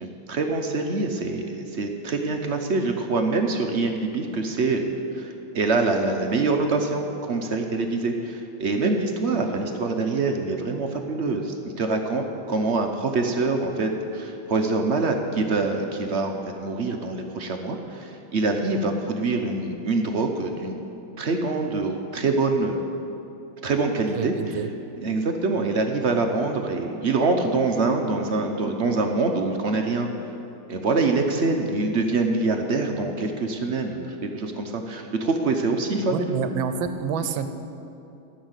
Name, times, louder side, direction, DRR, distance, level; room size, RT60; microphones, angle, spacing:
voice 1, 0.0-4.9 5.1-20.7 21.2-22.8 23.6-24.6 25.0-30.1 30.7-36.4, right 3 dB, 55° right, 4 dB, 0.7 m, -25 dB
voice 2, 24.1-24.7 36.1-37.5, right 6 dB, 90° right, 10 dB, 1.5 m, -28 dB
14.5 x 6.4 x 8.0 m, 2.8 s
omnidirectional pair, 2.1 m